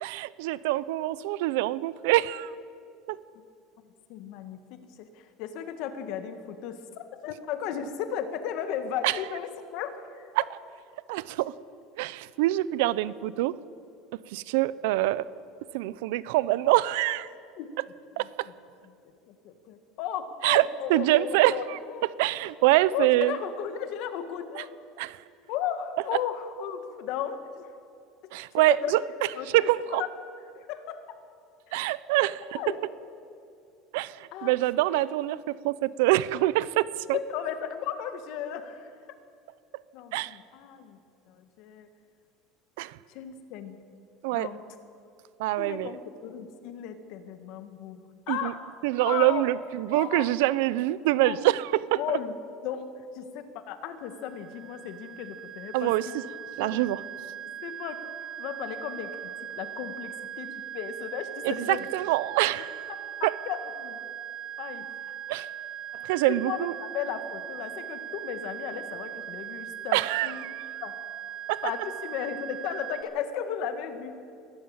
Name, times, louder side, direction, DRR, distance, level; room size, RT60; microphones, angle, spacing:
voice 1, 0.0-2.5 3.1-3.2 9.0-9.2 10.4-10.5 11.1-11.5 12.0-13.6 14.3-15.3 15.7-17.3 18.2-18.5 20.4-21.8 22.2-23.4 24.6-24.7 25.0-25.2 28.3-29.0 29.5-30.0 31.7-32.6 33.9-37.2 40.1-40.4 42.8-43.0 44.2-44.5 45.4-45.9 48.3-48.5 48.8-52.0 55.7-56.1 56.6-57.0 61.4-62.7 63.2-63.3 65.3-65.5 65.9-66.7 69.9-70.5 71.5-71.6, right 16 dB, 80° right, 18 dB, 0.6 m, -25 dB
voice 2, 4.1-4.6 5.0-10.3 17.6-17.7 18.2-18.3 19.3-22.0 22.9-24.7 25.5-27.7 28.5-28.9 29.4-30.1 30.5-31.2 31.7-31.8 32.6-32.8 34.3-34.5 34.9-35.1 37.1-38.9 39.9-41.0 41.3-41.9 43.1-43.8 44.3-44.7 45.6-48.0 48.3-48.6 49.0-49.4 49.9-50.3 51.2-51.5 52.0-52.4 52.6-52.9 53.1-56.2 56.6-56.9 57.4-61.9 63.2-64.0 64.6-65.2 66.3-70.5 70.8-71.0 71.6-74.2, left 9 dB, 55° left, 8 dB, 1.7 m, -35 dB
sound 1, 53.9-73.0, right 10 dB, 40° right, 2.3 m, -40 dB
21.5 x 13.5 x 8.8 m, 2.4 s
cardioid pair, 165°, 0 cm